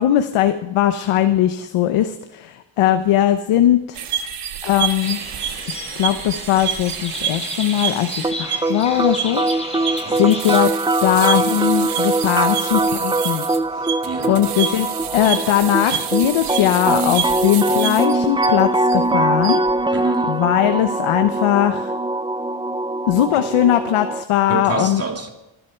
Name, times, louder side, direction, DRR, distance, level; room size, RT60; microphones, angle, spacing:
voice 1, 0.0-4.0 4.6-5.2 5.7-9.4 9.7-9.9 10.1-10.7 11.0-13.4 13.7-13.9 14.3-14.9 15.1-19.6 20.3-21.9 23.1-25.0, left 11 dB, 85° left, 1.0 m, -19 dB
sound 1, 3.9-19.0 19.3-19.7, right 9 dB, 90° right, 1.6 m, -28 dB
sound 2, 5.0-10.6, left 1 dB, 15° left, 5.6 m, -33 dB
sound 3, 8.2-24.2, right 2 dB, 10° right, 0.5 m, -22 dB
voice 2, 14.0-14.4 19.9-20.4 23.4-23.5 24.5-25.3, right 4 dB, 30° right, 3.1 m, -27 dB
26.0 x 11.0 x 4.5 m
cardioid pair, 80°, 48 cm